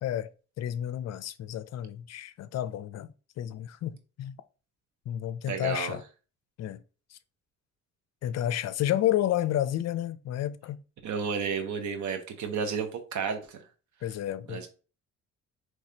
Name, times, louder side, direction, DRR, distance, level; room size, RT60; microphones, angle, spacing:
voice 1, 0.6-3.1 3.4-4.4 5.1-6.0 6.6-6.8 7.1-7.2 8.2-10.8 14.0-14.7, left 12 dB, 60° left, 0.5 m, -31 dB
voice 2, 5.5-6.0 11.0-13.6 14.5-14.7, right 6 dB, 70° right, 1.0 m, -32 dB
4.9 x 3.2 x 2.8 m
cardioid pair, 90°, 30 cm